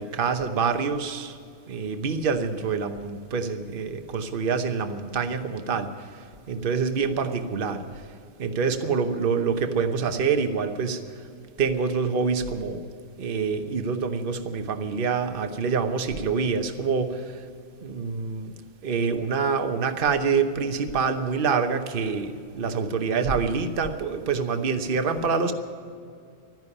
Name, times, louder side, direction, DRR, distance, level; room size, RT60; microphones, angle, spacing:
voice 1, 0.0-1.4 1.7-7.8 8.4-11.0 11.6-12.9 13.2-17.4 17.8-18.5 18.8-25.5, right 5 dB, 45° right, 8 dB, 1.1 m, -26 dB
12.5 x 10.5 x 9.9 m, 2.3 s
omnidirectional pair, 1.3 m